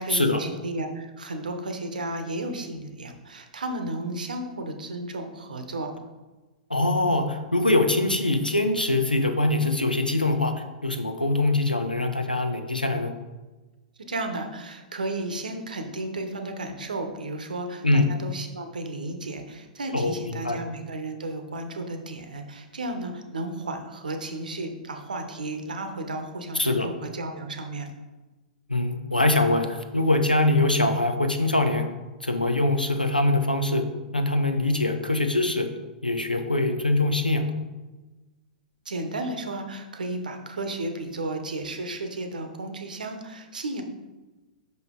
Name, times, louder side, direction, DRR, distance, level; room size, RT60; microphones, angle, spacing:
voice 1, 0.0-5.9 14.1-27.9 38.8-43.8, right 2 dB, 70° right, 6 dB, 0.8 m, -33 dB
voice 2, 6.7-10.5 10.8-13.1 17.8-18.1 19.9-20.6 26.6-26.9 28.7-31.9 32.2-33.8 34.1-35.7 36.0-37.5, left 2 dB, 85° left, 6 dB, 0.7 m, -23 dB
6.0 x 5.3 x 3.6 m, 1.2 s
figure-of-eight pair, 105°, 5 cm